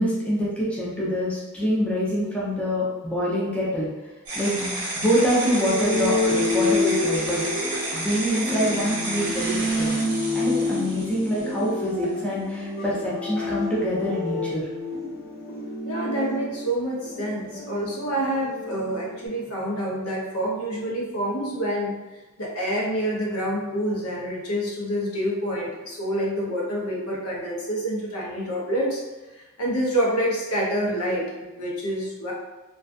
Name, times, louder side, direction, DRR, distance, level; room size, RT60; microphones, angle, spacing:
voice 1, 0.0-3.9 4.3-7.4 7.9-9.9 10.3-14.6, equal, 5° left, -7 dB, 0.5 m, -25 dB
sound 1, 4.3-11.8, right 1 dB, 85° right, 0.8 m, -31 dB
sound 2, 5.6-19.3, left 2 dB, 45° left, 0.8 m, -29 dB
voice 2, 15.8-21.9 22.4-29.0 29.6-32.3, equal, 85° left, -3 dB, 0.7 m, -27 dB
2.4 x 2.3 x 2.4 m, 1.2 s
head